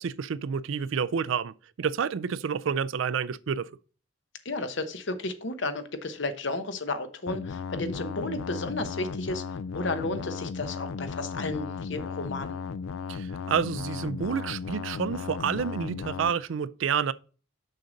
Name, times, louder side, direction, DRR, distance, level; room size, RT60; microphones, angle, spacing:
voice 1, 0.0-3.7 13.1-17.1, right 7 dB, 75° right, 0.4 m, -29 dB
voice 2, 4.4-9.4 9.7-12.6, left 2 dB, 65° left, 0.9 m, -33 dB
sound 1, 7.3-16.3, left 5 dB, 85° left, 0.4 m, -36 dB
6.5 x 6.4 x 3.9 m
head